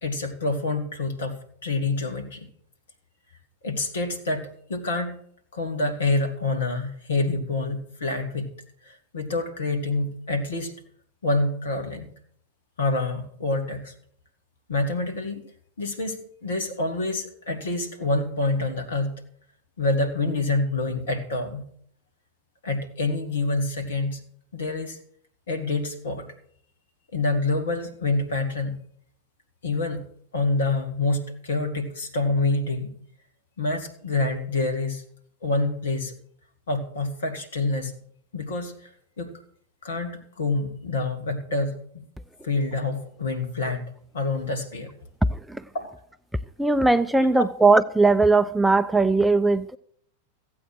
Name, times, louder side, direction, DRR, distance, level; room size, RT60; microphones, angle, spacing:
voice 1, 0.0-2.5 3.6-5.1 5.5-8.5 8.8-10.7 11.2-12.1 12.8-13.9 14.7-15.4 15.8-19.1 19.8-21.7 22.6-24.2 24.5-25.0 25.5-26.3 27.1-28.8 29.6-30.0 30.3-32.9 33.6-35.0 35.4-36.1 36.7-37.9 38.3-38.9 39.2-39.3 39.8-42.1 42.4-43.8 44.1-45.0 45.7-45.9 47.4-47.5, left 2 dB, 65° left, 2.4 m, -27 dB
voice 2, 46.6-49.8, right 3 dB, 5° right, 0.4 m, -19 dB
15.0 x 8.7 x 6.4 m
figure-of-eight pair, 90°, 0 cm